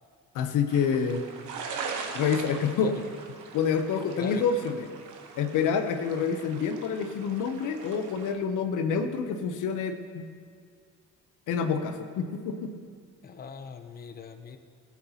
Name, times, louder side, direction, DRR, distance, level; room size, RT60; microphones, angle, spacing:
voice 1, 0.3-1.2 2.1-2.9 3.5-4.9 5.4-10.2 11.5-12.7, left 6 dB, 85° left, 7 dB, 0.8 m, -27 dB
sound 1, 0.7-8.3, right 5 dB, 85° right, 1.0 m, -41 dB
voice 2, 13.2-14.6, left 6 dB, 30° left, 7 dB, 0.6 m, -40 dB
14.0 x 8.4 x 2.9 m, 2.1 s
cardioid pair, 90°, 30 cm